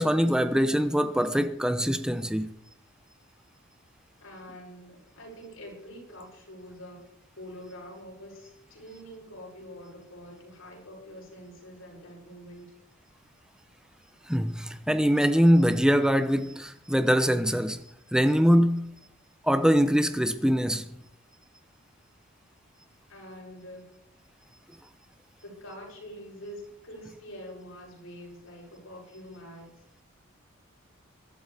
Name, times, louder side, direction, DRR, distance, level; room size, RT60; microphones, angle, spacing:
voice 1, 0.0-2.5 14.3-19.0 19.4-21.0, equal, 5° right, 0.8 m, -23 dB
voice 2, 4.2-7.1 7.4-12.7 23.1-23.9 25.4-29.7, equal, 85° left, 7.8 m, -45 dB
22.5 x 12.0 x 3.5 m
head